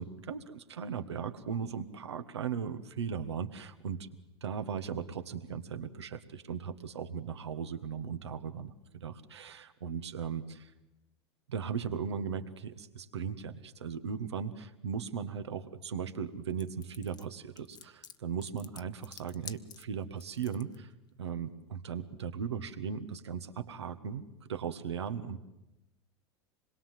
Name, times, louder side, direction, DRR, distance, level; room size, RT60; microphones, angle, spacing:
voice 1, 0.0-4.1 4.4-10.7 11.5-20.9 21.2-24.2 24.5-25.4, right 7 dB, 80° right, 9 dB, 1.6 m, -37 dB
sound 1, 16.6-20.8, left 8 dB, 30° left, 1.1 m, -49 dB
26.5 x 21.5 x 7.6 m, 0.98 s
hypercardioid pair, 80°, 14 cm